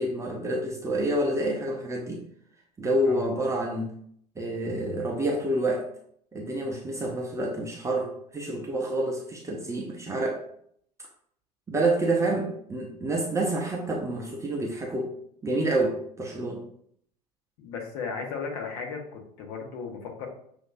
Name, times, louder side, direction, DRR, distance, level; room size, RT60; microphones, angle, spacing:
voice 1, 0.0-2.2 2.8-3.9 4.4-5.9 6.3-10.4 11.7-15.1 15.4-16.6, right 1 dB, 15° right, -1 dB, 0.6 m, -28 dB
voice 2, 17.6-20.3, left 5 dB, 55° left, 2 dB, 1.0 m, -35 dB
6.1 x 2.6 x 2.5 m, 0.66 s
figure-of-eight pair, 75°, 21 cm